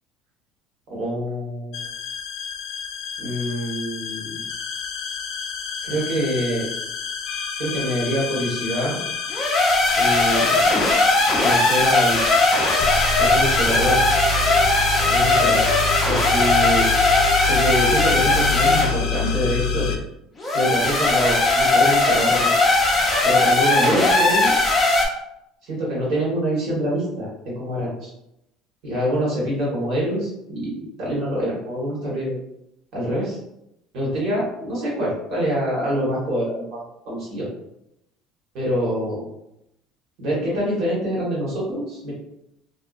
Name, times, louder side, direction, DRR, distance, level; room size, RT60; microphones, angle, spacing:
voice 1, 0.9-1.8 3.2-4.4 5.8-6.7 7.6-9.0 10.0-10.7 11.4-12.3 13.2-14.0 15.0-15.7 16.1-16.9 17.5-20.0 20.5-22.6 23.2-24.5 25.6-27.3 27.6-28.1 28.8-32.4 32.9-33.4 33.9-36.8 37.0-37.5 38.5-39.2 40.2-42.1, equal, 55° right, -5 dB, 1.2 m, -25 dB
sound 1, 1.7-20.0, left 4 dB, 70° left, 0.3 m, -27 dB
sound 2, 9.3-18.9 20.4-25.0, left 2 dB, 10° left, 0.5 m, -19 dB
2.6 x 2.1 x 2.4 m, 0.83 s
cardioid pair, 155°, 0 cm